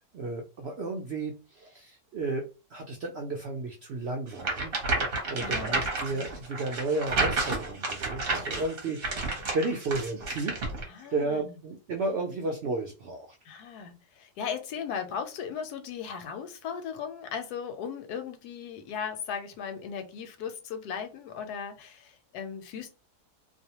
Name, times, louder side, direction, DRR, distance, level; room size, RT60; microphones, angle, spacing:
voice 1, 0.0-2.5 2.7-5.0 5.3-10.6 11.1-13.3, right 3 dB, 75° right, 0.5 m, -33 dB
sound 1, 4.4-10.8, right 3 dB, 45° right, 0.8 m, -31 dB
voice 2, 5.4-5.8 6.1-6.2 10.9-11.5 13.5-22.9, left 7 dB, 85° left, 1.1 m, -37 dB
2.6 x 2.0 x 2.8 m
omnidirectional pair, 1.6 m